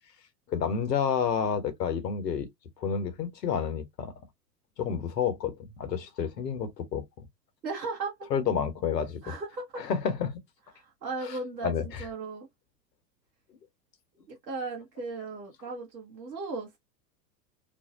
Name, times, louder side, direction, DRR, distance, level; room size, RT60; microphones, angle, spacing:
voice 1, 0.5-2.5 2.8-4.1 4.8-7.0 8.3-9.2 9.8-10.4 11.2-12.0, left 7 dB, 75° left, 1.1 m, -30 dB
voice 2, 7.6-8.3 9.2-9.8 10.7-12.5 14.3-16.8, right 3 dB, 90° right, 1.4 m, -36 dB
3.7 x 2.6 x 2.4 m
figure-of-eight pair, 95°, 50 cm